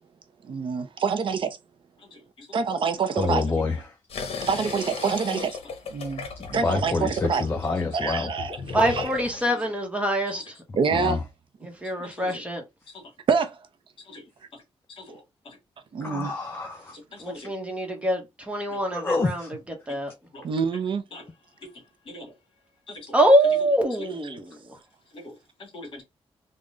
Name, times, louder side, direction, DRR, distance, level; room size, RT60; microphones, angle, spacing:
voice 1, 0.5-1.6 2.5-3.4 4.4-5.6 5.9-7.5 7.9-8.6 8.9-9.1 10.8-11.2 13.3-13.6 15.9-16.3 20.4-21.0 24.2-24.4, right 5 dB, 55° right, 0.5 m, -26 dB
voice 2, 2.0-2.5 7.0-7.1 9.5-9.6 10.3-10.4 12.2-12.4 12.9-13.0 14.1-14.2 15.0-15.6 16.9-17.5 18.7-18.8 19.9-20.0 20.3-20.5 21.1-21.2 21.6-21.7 22.1-22.3 22.9-23.2 23.9-24.1 25.1-26.0, left 1 dB, 55° left, 1.9 m, -43 dB
voice 3, 3.2-3.8 6.4-8.3 10.9-11.2 16.0-17.0 17.3-17.4 18.9-19.5, left 3 dB, 20° left, 0.5 m, -27 dB
sound 1, 4.1-9.5, left 5 dB, 70° left, 0.9 m, -35 dB
voice 4, 8.7-10.5 11.6-12.6 17.2-19.5 19.9-20.1 23.1-24.6, right 1 dB, 10° right, 0.9 m, -24 dB
3.6 x 2.1 x 3.7 m
wide cardioid pair, 160°, 10 cm